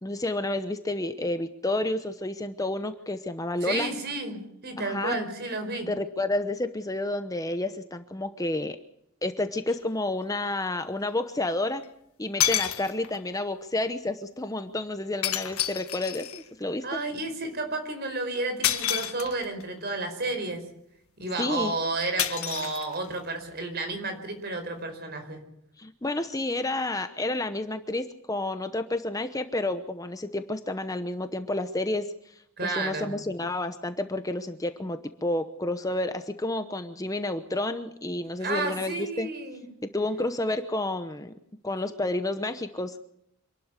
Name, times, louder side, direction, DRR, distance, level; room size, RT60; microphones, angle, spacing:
voice 1, 0.0-3.9 4.8-5.3 5.9-8.8 9.2-11.8 12.2-16.8 21.4-21.7 25.8-32.3 32.6-39.3 39.9-41.3 41.6-43.0, left 2 dB, 15° left, 9 dB, 0.9 m, -30 dB
voice 2, 3.6-5.9 16.8-20.6 21.2-25.4 32.6-33.1 38.4-39.6, right 2 dB, 50° right, 6 dB, 4.9 m, -31 dB
sound 1, 9.7-9.8 11.8-11.9 12.4-13.3 15.2-16.5 18.6-19.6 22.2-23.3, left 11 dB, 85° left, 1.7 m, -29 dB
26.5 x 12.5 x 8.3 m, 0.75 s
head